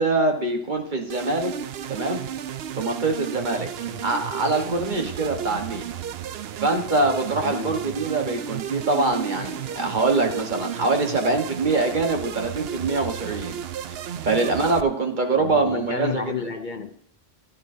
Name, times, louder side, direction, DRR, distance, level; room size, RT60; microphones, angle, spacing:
voice 1, 0.0-1.6 1.9-2.2 2.8-3.7 4.0-5.9 6.6-13.6 13.9-14.0 14.2-16.3, right 3 dB, 50° right, 3 dB, 1.4 m, -24 dB
sound 1, 1.1-14.8, right 9 dB, 80° right, 0.8 m, -33 dB
voice 2, 7.4-7.9 14.2-14.5 15.3-16.9, left 6 dB, 55° left, 8 dB, 0.8 m, -33 dB
15.0 x 10.5 x 2.7 m, 0.66 s
omnidirectional pair, 1.0 m